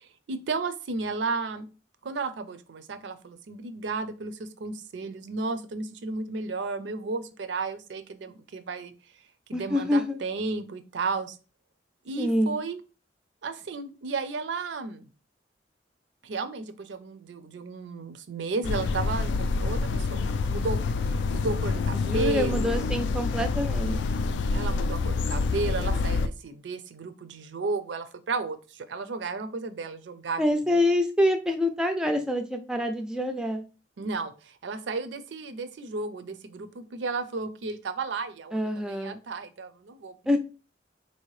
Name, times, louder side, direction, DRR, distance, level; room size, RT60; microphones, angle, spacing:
voice 1, 0.0-1.7 2.0-8.9 9.5-11.4 12.0-12.8 13.4-15.1 16.2-22.8 24.1-30.4 34.0-40.4, right 3 dB, 80° right, 11 dB, 0.5 m, -33 dB
voice 2, 9.5-10.2 12.2-12.6 21.9-24.0 30.4-33.6 38.5-39.2 40.3-40.4, left 1 dB, 5° right, 5 dB, 0.3 m, -26 dB
sound 1, 18.6-26.3, left 4 dB, 80° left, 0.3 m, -27 dB
4.2 x 2.7 x 3.1 m, 0.33 s
head